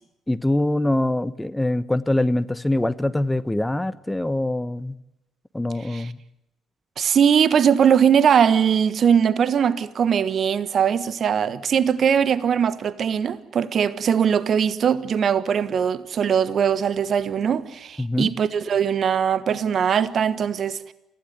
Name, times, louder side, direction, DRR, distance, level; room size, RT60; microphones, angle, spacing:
voice 1, 0.3-5.0 5.5-6.2 18.0-18.3, left 1 dB, 10° left, 1.1 m, -23 dB
voice 2, 7.0-20.9, right 7 dB, 50° right, 1.3 m, -20 dB
29.5 x 16.0 x 9.4 m
hypercardioid pair, 50°, 0 cm